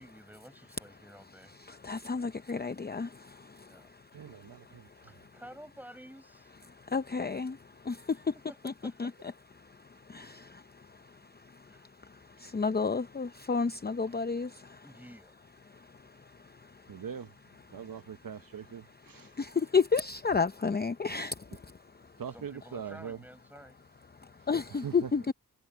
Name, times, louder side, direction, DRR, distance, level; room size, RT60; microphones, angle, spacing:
voice 1, 0.0-1.5 3.7-3.9 5.0-6.5 8.5-9.3 11.7-12.0 14.8-15.8 22.3-23.8, equal, 5° right, 5.7 m, -52 dB
voice 2, 1.8-3.1 6.9-7.5 7.9-8.0 8.6-8.7 9.0-9.1 10.1-10.3 12.5-14.5 19.4-19.5 19.7-21.3 24.5-25.3, left 5 dB, 25° left, 0.6 m, -30 dB
voice 3, 4.1-4.9 16.9-17.3 17.7-19.3 22.2-23.2 24.7-25.1, right 7 dB, 65° right, 0.9 m, -41 dB
wide cardioid pair, 90°, 36 cm